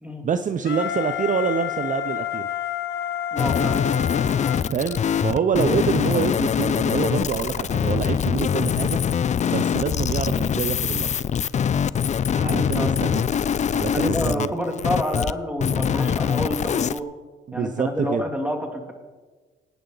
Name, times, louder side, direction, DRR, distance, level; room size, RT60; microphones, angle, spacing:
voice 1, 0.2-2.5 4.7-9.0 9.5-11.1 12.3-13.2 13.7-14.5 17.5-18.2, right 6 dB, 40° right, 10 dB, 0.6 m, -26 dB
Wind instrument woodwind instrument, 0.6-5.4, left 9 dB, 60° left, 1.2 m, -30 dB
voice 2, 3.3-3.9 12.4-13.0 13.9-17.1 17.5-18.9, equal, 5° right, 2 dB, 2.5 m, -28 dB
sound 1, 3.4-15.3 15.6-17.0, left 8 dB, 35° left, 0.4 m, -23 dB
23.5 x 9.2 x 3.9 m, 1.4 s
cardioid pair, 90°, 20 cm